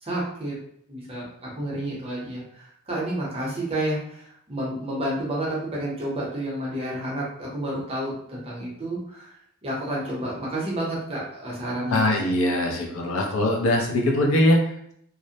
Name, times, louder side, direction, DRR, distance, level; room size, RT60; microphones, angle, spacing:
voice 1, 0.0-0.6 0.9-12.0, right 1 dB, 30° right, -5 dB, 0.6 m, -30 dB
voice 2, 11.9-14.9, left 1 dB, 70° left, 1 dB, 0.5 m, -22 dB
2.4 x 2.0 x 2.7 m, 0.69 s
head